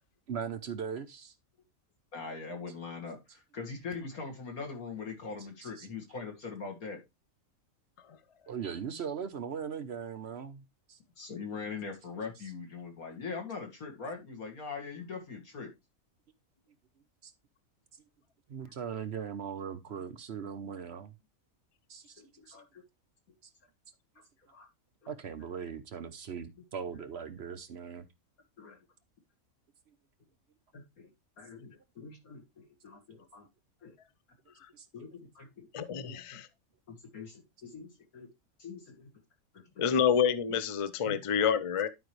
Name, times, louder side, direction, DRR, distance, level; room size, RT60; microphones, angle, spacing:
voice 1, 0.3-1.3 5.4-5.9 8.5-11.0 17.2-17.3 18.5-21.1 21.9-22.6 25.1-28.0 34.7-35.5, right 7 dB, 55° right, 0.9 m, -40 dB
voice 2, 2.1-7.0 11.2-15.7 22.2-22.8 24.5-24.7 28.6-28.8 30.7-31.1 31.4-33.5 33.8-33.9 34.9-35.7 36.0-36.4 36.9-38.3 38.6-39.1 39.5-39.9 40.5-40.6 41.0-41.2, left 4 dB, 90° left, 2.6 m, -42 dB
voice 3, 35.7-36.5 39.8-41.9, left 7 dB, 45° left, 0.4 m, -28 dB
11.5 x 5.1 x 3.1 m
omnidirectional pair, 1.5 m